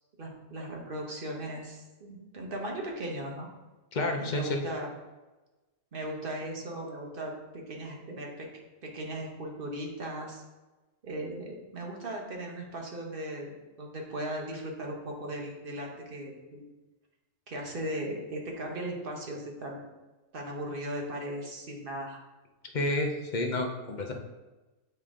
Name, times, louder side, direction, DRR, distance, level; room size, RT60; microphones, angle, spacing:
voice 1, 0.2-3.5 4.2-4.9 5.9-10.4 11.0-13.5 13.8-16.6 17.5-19.9 20.3-22.2, right 1 dB, 45° right, 0 dB, 1.3 m, -37 dB
voice 2, 3.9-4.6 22.7-24.1, left 2 dB, 45° left, 3 dB, 0.7 m, -30 dB
8.5 x 3.3 x 3.7 m, 1.1 s
omnidirectional pair, 1.4 m